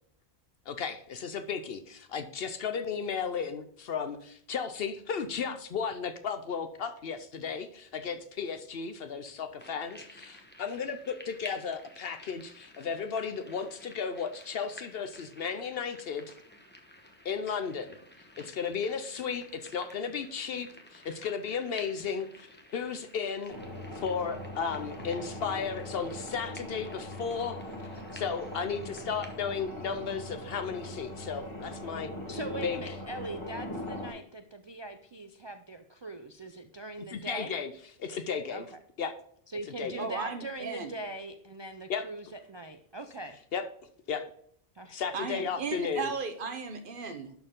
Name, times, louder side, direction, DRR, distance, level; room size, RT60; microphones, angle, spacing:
voice 1, 0.7-16.3 17.2-18.0 18.4-23.6 23.9-27.6 28.1-32.1 32.6-32.8 37.1-37.7 38.0-38.7 39.0-39.1 39.8-40.1 41.9-42.0 43.5-43.7 44.1-44.2 44.9-46.1, left 6 dB, 65° left, 9 dB, 0.8 m, -34 dB
sound 1, 9.6-29.4, left 1 dB, 10° left, 1.0 m, -53 dB
sound 2, 23.5-34.1, left 1 dB, 25° left, 1.8 m, -41 dB
voice 2, 32.3-37.5 38.5-38.6 39.5-43.4 44.7-45.0, right 2 dB, 40° right, 7 dB, 0.4 m, -41 dB
voice 3, 40.0-40.9 45.1-47.3, right 4 dB, 55° right, 8 dB, 1.0 m, -35 dB
11.5 x 4.4 x 3.7 m, 0.65 s
omnidirectional pair, 1.1 m